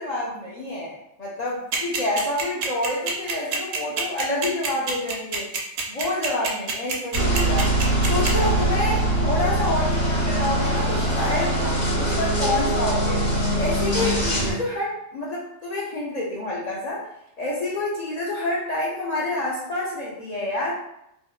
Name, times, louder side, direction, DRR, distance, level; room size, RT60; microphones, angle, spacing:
voice 1, 0.0-5.5 5.9-7.7 8.1-13.2 13.6-17.0 17.4-20.7, left 1 dB, 75° left, -6 dB, 0.3 m, -28 dB
sound 1, 1.7-8.3, right 5 dB, 65° right, 0.7 m, -26 dB
sound 2, 7.1-14.5, right 1 dB, 55° left, 1.2 m, -22 dB
2.8 x 2.1 x 2.2 m, 0.80 s
omnidirectional pair, 1.2 m